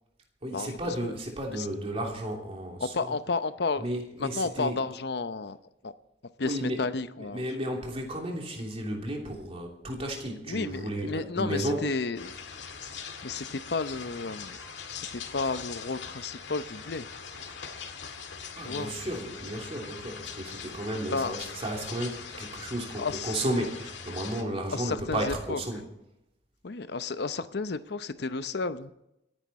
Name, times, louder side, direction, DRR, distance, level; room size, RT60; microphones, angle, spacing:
voice 1, 0.4-3.1 3.8-4.8 6.4-6.8 7.2-11.8 18.6-25.8, right 1 dB, 35° right, 3.1 m, -33 dB
voice 2, 2.8-3.9 4.2-5.6 5.8-5.9 6.4-7.4 10.5-12.3 13.2-14.6 14.9-17.1 18.6-18.9 21.1-21.4 23.0-23.4 24.7-25.6 26.6-28.9, left 4 dB, 65° left, 0.7 m, -32 dB
sound 1, 12.1-24.4, left 6 dB, 85° left, 1.8 m, -42 dB
26.0 x 9.9 x 4.2 m
head